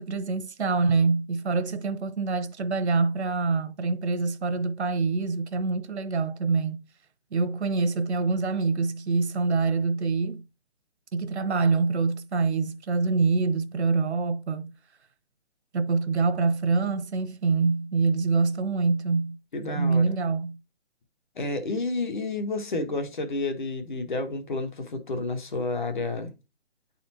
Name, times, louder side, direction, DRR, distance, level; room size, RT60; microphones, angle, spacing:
voice 1, 0.0-6.8 7.3-10.4 11.1-14.7 15.7-19.4 19.7-20.6, right 4 dB, 75° right, 0.9 m, -25 dB
voice 2, 19.5-20.0 21.4-26.3, left 2 dB, 45° left, 1.1 m, -30 dB
9.5 x 4.2 x 2.7 m
hypercardioid pair, 175°, 33 cm